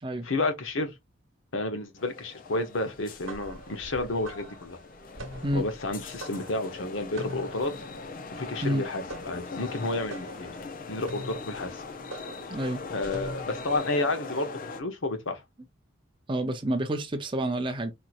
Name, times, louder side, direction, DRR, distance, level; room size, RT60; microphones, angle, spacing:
voice 1, 0.2-0.9 1.5-4.8 5.5-7.7 8.3-10.5 10.9-11.8 12.9-15.4, left 2 dB, 75° left, 0.9 m, -31 dB
sound 1, 2.0-14.8, left 4 dB, 45° left, 0.6 m, -41 dB
sound 2, 3.0-13.8, right 1 dB, 75° right, 1.2 m, -44 dB
voice 2, 12.5-12.8 16.3-17.9, right 1 dB, 25° right, 0.6 m, -28 dB
4.3 x 2.8 x 2.5 m
head